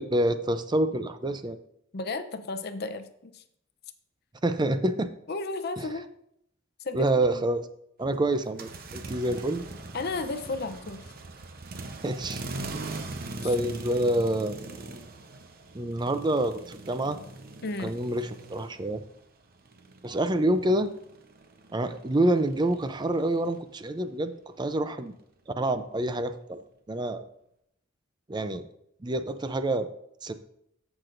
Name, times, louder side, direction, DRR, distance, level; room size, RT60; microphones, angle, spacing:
voice 1, 0.0-1.6 4.4-5.1 5.8-5.9 6.9-7.7 8.0-9.6 12.0-12.4 12.7-12.9 13.4-14.6 15.7-17.2 17.8-19.0 20.0-20.9 21.7-25.1 25.5-26.6 26.9-27.3 28.3-28.6 29.0-29.9 30.2-30.3, right 1 dB, 20° right, 10 dB, 0.5 m, -27 dB
voice 2, 1.9-3.4 5.3-6.1 6.8-7.1 7.3-7.4 9.9-11.0 17.6-17.9, left 3 dB, 55° left, 10 dB, 0.6 m, -33 dB
sound 1, 8.4-19.2 19.5-23.6, right 2 dB, 50° right, 0.8 m, -41 dB
14.0 x 6.1 x 2.6 m, 0.75 s
head